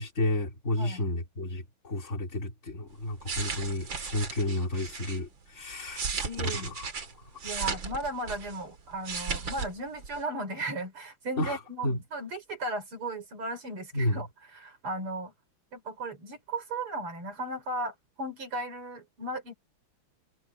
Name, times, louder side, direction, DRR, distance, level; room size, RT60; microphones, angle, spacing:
voice 1, 0.0-6.9 11.4-12.0 13.9-14.2, left 1 dB, 30° left, 4.0 m, -32 dB
sound 1, 3.0-5.2 5.7-8.6 8.9-9.7 10.0-10.2, right 5 dB, 60° right, 3.2 m, -35 dB
voice 2, 6.2-6.7 7.4-14.3 14.5-15.3 15.7-19.5, right 2 dB, 75° right, 5.8 m, -36 dB
omnidirectional pair, 2.4 m